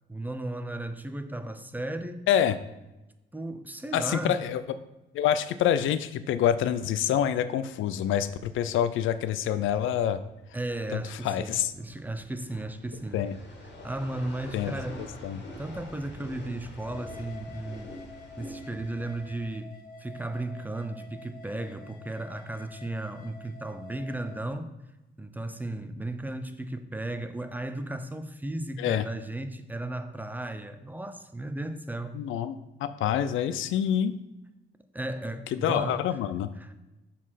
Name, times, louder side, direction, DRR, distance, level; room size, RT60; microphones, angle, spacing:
voice 1, 0.1-2.2 3.3-4.3 10.5-13.2 13.8-15.1 15.4-17.9 18.4-24.7 25.2-32.2 34.9-36.0 36.6-36.7, right 1 dB, 10° right, 9 dB, 0.7 m, -35 dB
voice 2, 3.9-4.6 5.1-10.2 10.9-11.7 13.1-13.3 14.5-14.7 15.0-15.4 28.8-29.0 32.1-34.1 35.5-36.5, left 10 dB, 80° left, 13 dB, 0.5 m, -27 dB
sound 1, 10.2-19.5, left 1 dB, 60° left, 2.0 m, -46 dB
sound 2, 16.8-24.5, left 3 dB, 45° left, 1.2 m, -48 dB
7.2 x 4.2 x 5.8 m, 1.0 s
cardioid pair, 90°, 20 cm